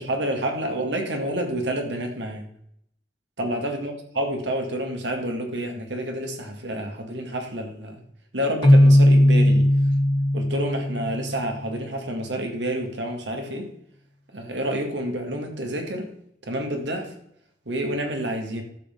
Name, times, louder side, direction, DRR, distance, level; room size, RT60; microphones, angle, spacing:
voice 1, 0.0-2.5 3.4-8.0 8.3-9.7 10.3-13.7 14.3-16.1 16.4-17.1 17.7-18.6, right 1 dB, 90° right, 3 dB, 2.3 m, -29 dB
Keyboard (musical), 8.6-11.5, left 1 dB, 25° left, 0.7 m, -17 dB
12.0 x 8.0 x 3.9 m, 0.72 s
head